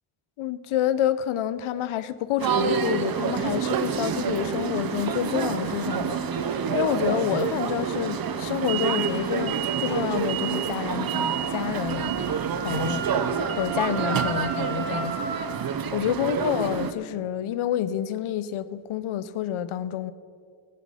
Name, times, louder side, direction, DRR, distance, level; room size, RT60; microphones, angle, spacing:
voice 1, 0.4-12.1 12.6-13.1 13.6-15.3 15.9-20.1, left 11 dB, 80° left, 0.7 m, -28 dB
sound 1, 2.4-16.9, right 7 dB, 45° right, 0.8 m, -27 dB
Wind instrument woodwind instrument, 11.0-15.7, right 5 dB, 65° right, 2.3 m, -35 dB
14.5 x 11.0 x 5.6 m
wide cardioid pair, 125°, 49 cm